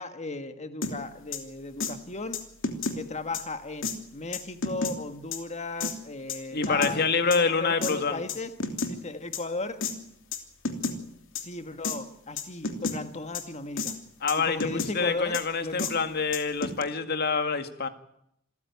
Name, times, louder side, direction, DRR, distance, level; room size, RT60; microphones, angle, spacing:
voice 1, 0.0-2.4 2.9-8.5 8.9-9.8 11.4-13.9 14.4-16.0, left 2 dB, 35° left, 9 dB, 1.5 m, -36 dB
sound 1, 0.8-0.9 1.3-1.4 1.8-1.9 2.3-3.0 3.3-3.4 3.8-4.0 4.3-4.9 5.3-5.4 5.8-5.9 6.3-6.9 7.3-7.4 7.8-7.9 8.3-8.9 9.3-9.4 9.8-9.9 10.3-10.4 10.6-11.0 11.3-11.4 11.8-12.0 12.4-13.0 13.3-13.4 13.8-14.0 14.3-14.9 15.3-15.4 15.8-15.9 16.3-16.8, left 4 dB, 65° left, 2.9 m, -30 dB
voice 2, 6.5-8.2 14.2-17.9, left 4 dB, 50° left, 8 dB, 2.0 m, -26 dB
27.0 x 14.5 x 9.5 m, 0.76 s
head